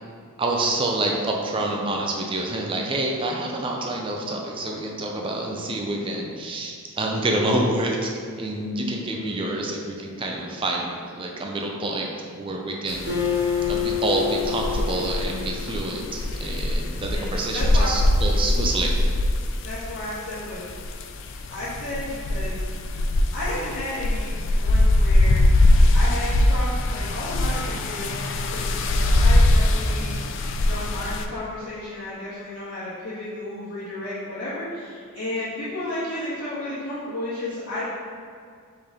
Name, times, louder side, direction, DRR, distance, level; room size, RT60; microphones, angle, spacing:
voice 1, 0.4-8.1 8.4-13.1 13.7-18.9, right 2 dB, 25° right, 0 dB, 0.4 m, -27 dB
sound 1, 12.9-31.2, left 1 dB, 55° left, 0.3 m, -22 dB
Acoustic guitar, 13.1-16.6, left 8 dB, 55° right, 1.3 m, -28 dB
voice 2, 17.5-17.9 19.6-20.6 21.5-22.7 23.3-25.4 25.9-30.2 30.7-37.8, left 1 dB, 85° left, -13 dB, 1.3 m, -33 dB
4.3 x 3.3 x 3.7 m, 2.2 s
head